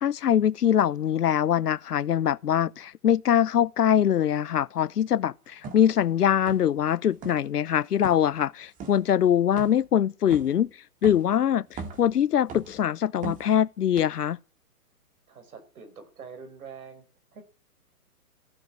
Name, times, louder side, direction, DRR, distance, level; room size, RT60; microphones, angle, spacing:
voice 1, 0.0-10.7 11.0-14.4, left 9 dB, 75° left, 0.8 m, -23 dB
sound 1, 5.6-5.9 6.5-6.8 7.1-7.5 8.0-8.3 8.8-9.0 9.6-9.9 10.3-10.6 11.0-11.3 11.7-12.1 12.5-12.8 13.2-13.5 14.0-14.1, right 5 dB, 15° right, 2.1 m, -39 dB
voice 2, 15.3-17.0 17.3-17.4, right 5 dB, 65° right, 5.7 m, -45 dB
14.5 x 10.5 x 8.6 m
hypercardioid pair, 135°, 46 cm